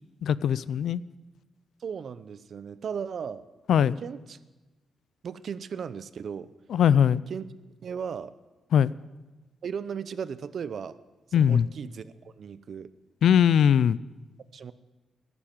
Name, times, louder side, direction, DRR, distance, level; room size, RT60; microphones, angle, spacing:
voice 1, 0.2-1.0 3.7-4.0 6.7-7.2 8.7-8.9 11.3-11.7 13.2-14.0, left 8 dB, 75° left, 19 dB, 0.4 m, -20 dB
voice 2, 1.8-3.4 4.0-4.4 5.2-6.5 7.3-7.4 7.8-8.3 9.6-11.0 11.3-12.9 14.5-14.7, right 7 dB, 55° right, 15 dB, 0.7 m, -36 dB
14.5 x 12.0 x 7.3 m, 1.2 s
cardioid pair, 110°, 0 cm